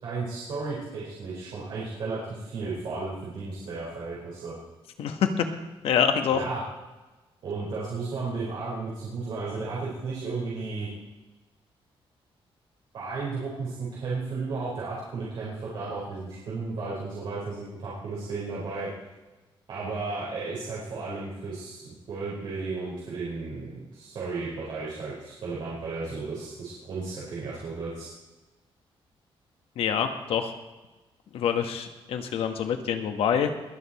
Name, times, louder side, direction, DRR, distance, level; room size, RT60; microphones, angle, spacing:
voice 1, 0.0-4.6 6.3-6.6 7.4-10.9 12.9-18.9 19.7-28.1, right 3 dB, 60° right, -7 dB, 4.4 m, -34 dB
voice 2, 5.0-5.4 5.8-6.4 29.8-30.5 31.3-33.5, left 8 dB, 80° left, 6 dB, 1.4 m, -26 dB
21.5 x 8.5 x 4.3 m, 1.1 s
wide cardioid pair, 175°, 10 cm